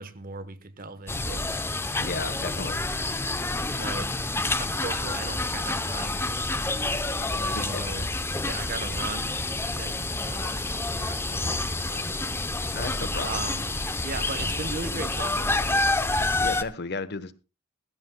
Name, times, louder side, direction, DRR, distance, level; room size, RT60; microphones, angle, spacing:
voice 1, 0.0-1.5 3.7-4.1 4.6-6.5 7.3-8.1 8.4-9.4 9.7-12.1 13.2-13.6 14.0-15.8, right 3 dB, 40° right, 1.0 m, -37 dB
sound 1, 1.1-16.6, left 2 dB, 10° left, 0.7 m, -28 dB
voice 2, 2.0-2.8 7.2-7.3 7.5-7.8 12.7-13.3 16.4-17.3, left 3 dB, 50° left, 1.1 m, -34 dB
20.0 x 15.0 x 2.2 m
head